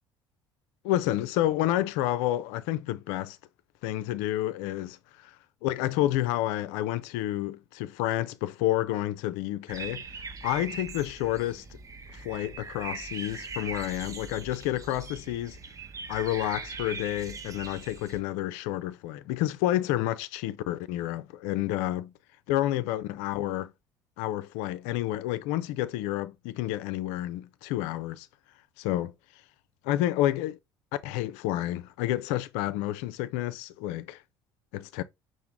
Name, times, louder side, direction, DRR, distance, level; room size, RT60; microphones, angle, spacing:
voice 1, 0.8-3.4 3.8-5.0 5.2-5.3 5.6-10.0 10.4-11.6 12.1-15.6 16.1-22.1 22.5-23.7 24.2-28.3 28.8-29.1 29.8-30.6 31.0-34.2 34.7-35.0, left 14 dB, 60° left, 0.4 m, -29 dB
sound 1, 9.7-18.2, right 4 dB, 25° right, 0.7 m, -41 dB
5.7 x 2.5 x 3.6 m
figure-of-eight pair, 55°, 13 cm